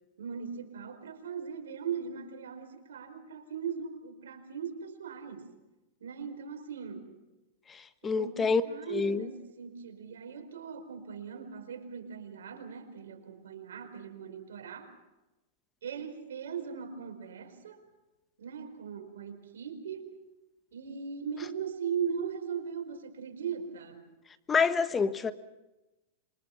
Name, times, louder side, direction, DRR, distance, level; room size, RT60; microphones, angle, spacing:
voice 1, 0.2-5.5 6.0-7.1 8.0-14.9 15.8-17.8 18.4-20.1 20.7-24.1, right 7 dB, 90° right, 4.8 m, -39 dB
voice 2, 7.7-8.6 8.9-9.2 24.5-25.3, left 5 dB, 20° left, 1.4 m, -27 dB
27.0 x 24.5 x 5.8 m
hypercardioid pair, 130°, 0 cm